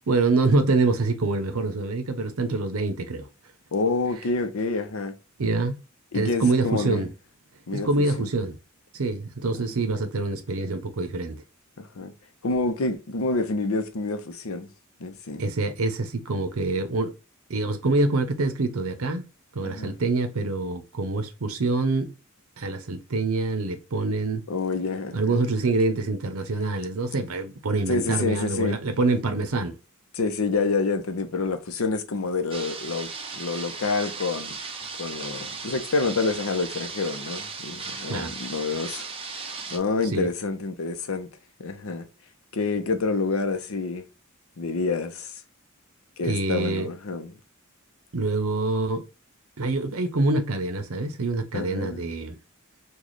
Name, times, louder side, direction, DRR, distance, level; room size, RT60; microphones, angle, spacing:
voice 1, 0.1-3.3 5.4-5.8 6.1-7.1 7.7-8.6 8.9-11.4 15.4-17.1 17.5-19.2 19.5-22.1 22.6-24.4 25.1-29.7 38.1-38.3 40.1-40.3 46.2-46.9 48.1-49.0 49.6-52.4, right 3 dB, 80° right, 0.6 m, -25 dB
voice 2, 3.7-5.1 6.1-7.1 7.7-7.9 8.2-8.3 11.8-12.1 12.4-14.7 15.0-15.5 19.6-20.0 24.5-25.4 27.9-28.8 30.1-34.6 35.0-41.3 41.6-42.1 42.5-44.1 44.6-45.3 46.2-47.4 51.5-52.1, left 3 dB, 70° left, 0.6 m, -28 dB
sound 1, 32.5-39.8, right 4 dB, 25° right, 0.6 m, -36 dB
3.1 x 2.3 x 3.8 m
head